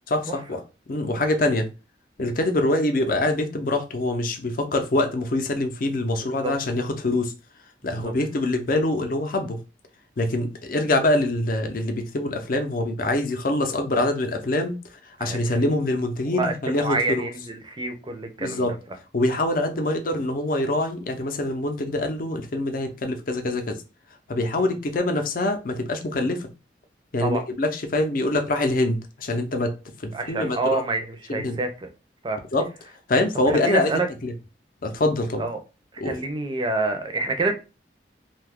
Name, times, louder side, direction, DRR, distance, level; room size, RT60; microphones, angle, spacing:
voice 1, 0.1-0.6 0.9-1.7 2.2-7.3 7.8-9.6 10.2-14.8 15.2-17.2 18.4-18.7 19.1-23.8 24.3-26.5 27.1-29.7 30.0-30.8 31.3-31.6 32.5-32.6 33.1-33.9 34.2-34.3 34.8-35.4 36.0-36.2, left 2 dB, 50° left, 0.6 m, -24 dB
voice 2, 7.8-8.1 15.2-15.7 16.3-18.8 24.6-24.8 27.2-27.4 30.1-31.9 32.2-32.4 33.5-34.1 35.4-35.6 36.0-37.5, right 2 dB, 25° right, 0.5 m, -28 dB
2.7 x 2.3 x 3.5 m
head